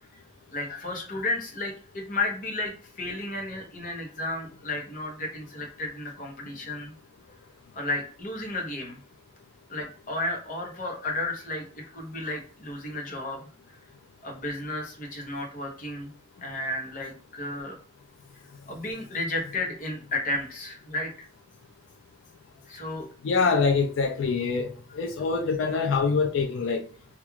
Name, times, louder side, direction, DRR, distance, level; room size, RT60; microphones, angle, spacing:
voice 1, 0.5-6.9 7.7-9.0 9.7-13.4 13.7-13.8 14.2-16.1 16.4-17.8 18.7-21.3 22.7-23.1, left 2 dB, 45° left, 0.7 m, -33 dB
voice 2, 23.2-24.7 24.9-26.8, left 4 dB, 80° left, 0.3 m, -24 dB
2.3 x 2.2 x 3.0 m
head